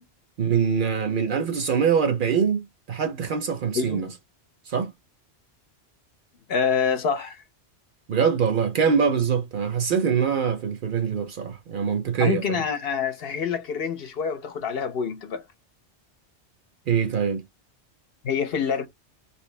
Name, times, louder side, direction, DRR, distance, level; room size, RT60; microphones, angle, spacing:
voice 1, 0.4-4.1 4.7-4.9 8.1-12.6 16.9-17.4, right 6 dB, 60° right, 0.6 m, -24 dB
voice 2, 6.5-7.4 12.2-15.4 18.2-18.9, left 6 dB, 65° left, 0.8 m, -26 dB
3.0 x 2.7 x 3.2 m
omnidirectional pair, 1.2 m